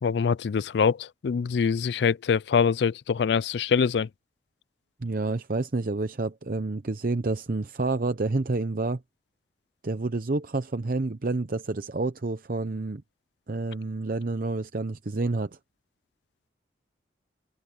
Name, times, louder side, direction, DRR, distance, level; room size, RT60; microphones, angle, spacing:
voice 1, 0.0-4.1, left 6 dB, 70° left, 0.4 m, -24 dB
voice 2, 5.0-9.0 9.8-13.0 13.5-15.6, right 3 dB, 50° right, 0.7 m, -29 dB
head